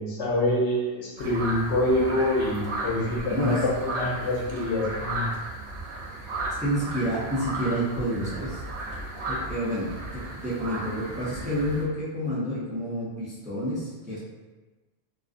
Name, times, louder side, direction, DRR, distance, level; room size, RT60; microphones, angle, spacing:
voice 1, 0.0-5.3, left 1 dB, 85° left, -5 dB, 1.0 m, -26 dB
sound 1, 1.2-11.8, right 2 dB, 80° right, 0.9 m, -34 dB
voice 2, 3.3-3.6 6.6-8.6 9.3-14.2, equal, 10° right, -9 dB, 0.4 m, -29 dB
2.4 x 2.4 x 2.4 m, 1.2 s
omnidirectional pair, 1.1 m